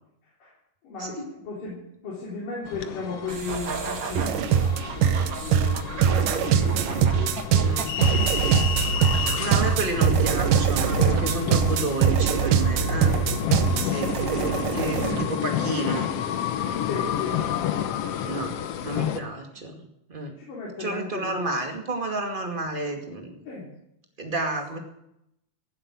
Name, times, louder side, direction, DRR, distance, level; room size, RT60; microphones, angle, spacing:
voice 1, 0.2-0.6 0.8-7.2 8.7-9.5 11.1-11.6 14.3-14.6 16.8-17.5 18.8-19.4 20.4-21.4 23.4-23.7, left 4 dB, 85° left, -5 dB, 5.3 m, -37 dB
sound 1, 2.7-19.2, left 9 dB, 65° left, 1.6 m, -30 dB
sound 2, 3.3-11.8, right 5 dB, 55° right, 0.9 m, -37 dB
sound 3, 4.2-15.3, right 8 dB, 90° right, 2.6 m, -22 dB
voice 2, 7.6-8.0 9.4-13.2 13.8-16.1 18.2-19.8 20.1-20.3 20.8-23.4 24.2-24.8, right 2 dB, 20° right, 3 dB, 1.9 m, -31 dB
16.0 x 7.7 x 9.7 m, 0.79 s
omnidirectional pair, 3.7 m